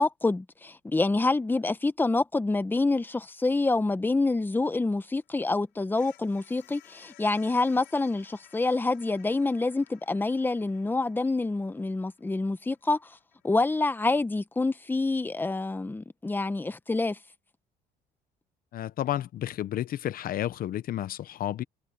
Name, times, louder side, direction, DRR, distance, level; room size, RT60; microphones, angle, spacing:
voice 1, 0.0-13.0 13.4-17.2, left 3 dB, 10° left, 1.0 m, -27 dB
sound 1, 5.2-14.1, left 15 dB, 85° left, 5.6 m, -58 dB
voice 2, 18.7-21.6, left 12 dB, 60° left, 0.9 m, -31 dB
cardioid pair, 110°, 17 cm